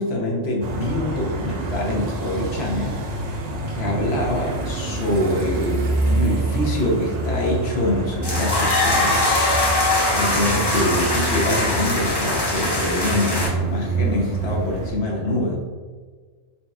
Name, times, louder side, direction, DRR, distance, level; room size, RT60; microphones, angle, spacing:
voice 1, 0.0-3.0 3.7-9.8 10.1-15.6, left 1 dB, 60° left, -1 dB, 1.0 m, -25 dB
sound 1, 0.6-14.9, right 2 dB, 60° right, 0.4 m, -27 dB
sound 2, 8.2-13.5, left 2 dB, 20° left, 0.8 m, -22 dB
4.0 x 3.7 x 2.3 m, 1.5 s
omnidirectional pair, 1.3 m